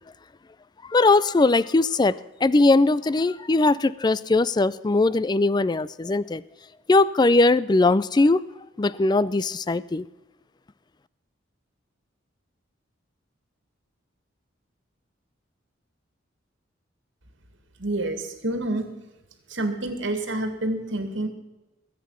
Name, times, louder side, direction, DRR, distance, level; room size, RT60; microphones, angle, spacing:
voice 1, 0.9-2.2 2.4-6.4 6.9-8.4 8.8-10.1, left 2 dB, 20° left, 0.4 m, -20 dB
voice 2, 17.8-18.9 19.5-21.3, right 1 dB, 75° right, 2.2 m, -28 dB
21.0 x 8.4 x 5.7 m
head